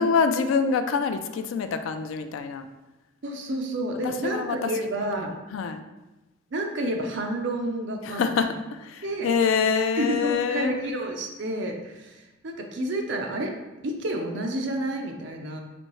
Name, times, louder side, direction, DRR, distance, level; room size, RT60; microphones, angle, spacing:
voice 1, 0.0-2.7 4.0-4.7 5.5-5.8 8.0-10.7, left 5 dB, 70° left, 8 dB, 0.3 m, -25 dB
voice 2, 3.2-5.3 6.5-8.5 9.0-9.3 10.0-13.6 13.8-15.6, right 1 dB, 55° right, 3 dB, 0.5 m, -30 dB
4.3 x 2.7 x 3.0 m, 1.1 s
head